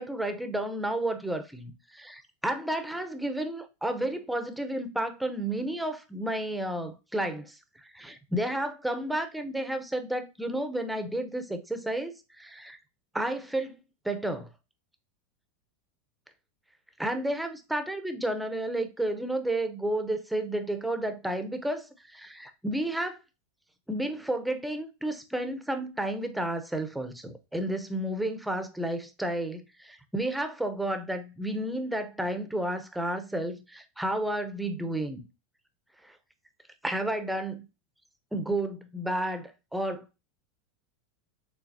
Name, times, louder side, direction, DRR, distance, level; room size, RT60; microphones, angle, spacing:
voice 1, 0.0-7.6 7.9-12.8 13.1-13.7 14.0-14.5 17.0-23.2 23.9-35.2 36.0-36.1 36.8-37.7 38.3-40.0, right 1 dB, 5° right, 0.6 m, -31 dB
5.8 x 3.4 x 2.6 m
supercardioid pair, 140°, 0 cm